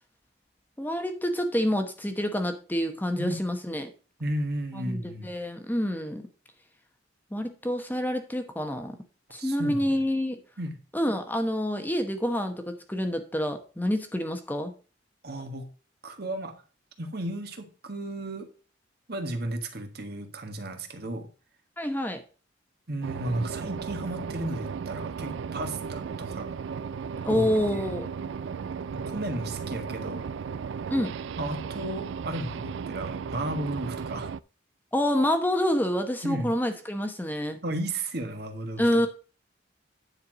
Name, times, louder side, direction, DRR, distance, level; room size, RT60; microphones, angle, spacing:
voice 1, 0.8-3.9 4.8-6.2 7.3-8.9 9.3-10.4 10.9-14.7 21.8-22.2 27.2-28.1 30.9-31.1 34.9-37.6 38.8-39.1, equal, 10° left, 6 dB, 1.0 m, -27 dB
voice 2, 4.2-5.3 9.4-9.9 10.6-10.7 15.2-15.7 16.0-16.5 17.0-18.5 19.1-21.3 22.9-26.5 27.3-27.5 27.7-27.9 28.9-30.3 31.4-34.3 36.2-36.5 37.6-38.9, right 1 dB, 55° right, 6 dB, 1.5 m, -34 dB
sound 1, 23.0-34.4, right 6 dB, 70° right, 0.3 m, -35 dB
9.8 x 4.6 x 6.0 m, 0.36 s
head